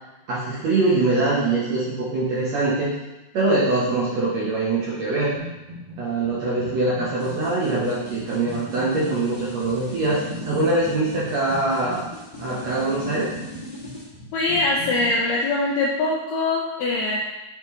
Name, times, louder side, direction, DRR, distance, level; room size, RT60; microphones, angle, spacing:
voice 1, 0.3-2.9 3.3-5.4 6.0-12.0 12.4-13.3, right 2 dB, 80° right, -7 dB, 1.5 m, -23 dB
sound 1, 5.4-6.0 6.2-15.1, equal, 10° right, 1.0 m, -40 dB
sound 2, 7.2-14.0, left 1 dB, 25° left, 1.2 m, -39 dB
voice 2, 14.3-17.2, left 2 dB, 85° left, -3 dB, 1.9 m, -22 dB
8.3 x 5.1 x 3.2 m, 1.0 s
omnidirectional pair, 4.8 m